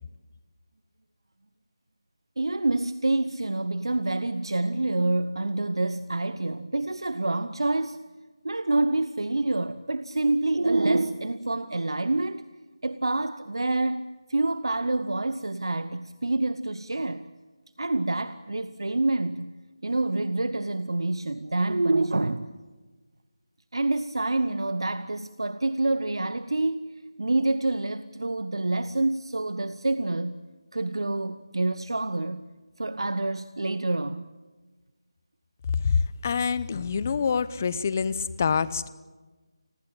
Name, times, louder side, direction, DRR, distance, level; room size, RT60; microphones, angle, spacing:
voice 1, 2.4-8.0 8.4-12.4 12.8-17.3 17.8-22.5 23.7-26.9 27.2-30.4 30.7-32.4 32.8-34.3, right 2 dB, 70° right, 1.0 m, -27 dB
voice 2, 35.7-38.9, left 6 dB, 30° left, 0.9 m, -26 dB
30.0 x 20.5 x 8.9 m
figure-of-eight pair, 160°, 3 cm